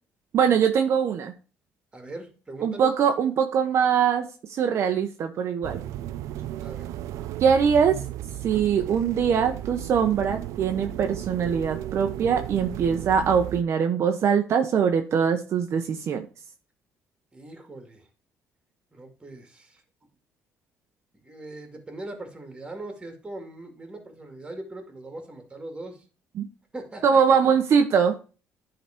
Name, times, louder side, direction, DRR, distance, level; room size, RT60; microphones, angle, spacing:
voice 1, 0.3-1.3 2.6-5.8 7.4-8.0 8.4-16.3 26.4-26.5 27.0-28.1, right 7 dB, 55° right, 5 dB, 0.9 m, -22 dB
voice 2, 1.9-2.9 6.6-6.9 17.3-18.1 18.9-19.8 21.2-26.0 26.7-27.4, right 2 dB, 15° right, 5 dB, 2.4 m, -40 dB
sound 1, 5.6-13.6, right 13 dB, 80° right, 0.5 m, -35 dB
10.0 x 4.0 x 4.4 m, 0.36 s
cardioid pair, 110°, 5 cm